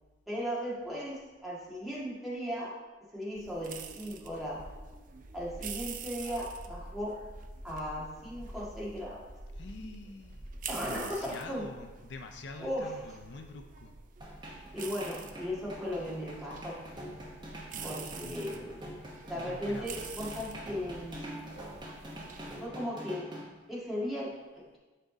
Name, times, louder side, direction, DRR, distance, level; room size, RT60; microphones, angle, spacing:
voice 1, 0.3-2.7 3.1-4.6 5.3-7.1 7.6-9.3 10.7-11.6 12.6-13.1 14.7-16.8 17.8-18.8 19.3-21.4 22.6-23.3 23.7-24.3, equal, ahead, -8 dB, 1.7 m, -37 dB
sound 1, 3.3-22.7, right 6 dB, 45° right, 0.5 m, -47 dB
sound 2, 4.6-11.0, equal, 70° right, 2.0 m, -48 dB
voice 2, 9.5-10.5 10.9-13.9 17.7-18.6 19.3-20.3 21.1-21.4, left 3 dB, 65° left, 6 dB, 0.5 m, -47 dB
sound 3, 14.2-23.4, equal, 25° right, 1.2 m, -45 dB
7.5 x 5.1 x 3.9 m, 1.2 s
head